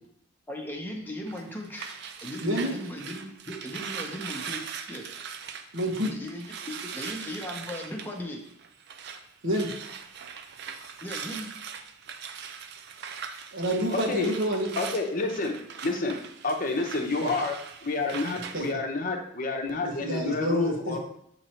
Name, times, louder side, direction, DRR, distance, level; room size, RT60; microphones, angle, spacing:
voice 1, 0.5-1.9 2.2-4.6 4.9-5.1 6.0-8.4 11.0-11.5, left 1 dB, 10° left, 0 dB, 0.9 m, -37 dB
sound 1, 1.3-9.2 9.5-18.7, right 6 dB, 55° right, 0.4 m, -40 dB
voice 2, 2.4-2.7 5.7-6.1 9.4-9.7 13.5-14.7 17.2-17.3 18.5-18.6 19.8-21.0, equal, 70° right, -1 dB, 1.2 m, -28 dB
voice 3, 13.9-14.3 14.8-15.5 15.8-16.2 16.4-17.5 17.8-21.0, left 3 dB, 40° left, 2 dB, 0.8 m, -29 dB
7.6 x 3.0 x 4.3 m, 0.73 s
head